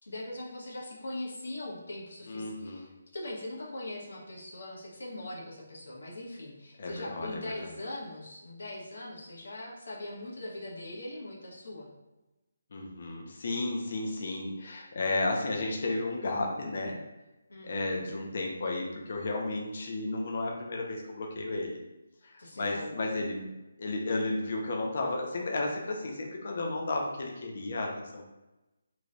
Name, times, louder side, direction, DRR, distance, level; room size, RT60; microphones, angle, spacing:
voice 1, 0.0-11.9 17.5-18.3 22.4-23.2, left 1 dB, 75° left, -4 dB, 1.1 m, -41 dB
voice 2, 2.3-2.9 6.8-7.7 12.7-17.0 17.6-21.8 22.2-23.5 23.8-28.2, left 2 dB, 35° left, 0 dB, 0.5 m, -33 dB
3.1 x 2.2 x 3.8 m, 1.0 s
hypercardioid pair, 180°, 0 cm